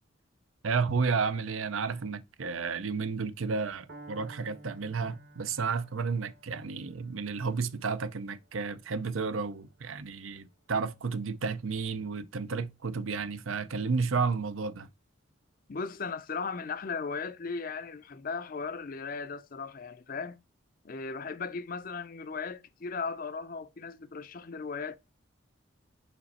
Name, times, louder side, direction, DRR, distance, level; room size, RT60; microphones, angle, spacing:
voice 1, 0.6-14.9, right 5 dB, 80° right, 0.6 m, -32 dB
Piano, 3.9-11.8, right 2 dB, 55° right, 1.3 m, -55 dB
voice 2, 15.7-20.4 20.8-25.0, left 4 dB, 45° left, 0.5 m, -37 dB
5.3 x 5.2 x 4.1 m
head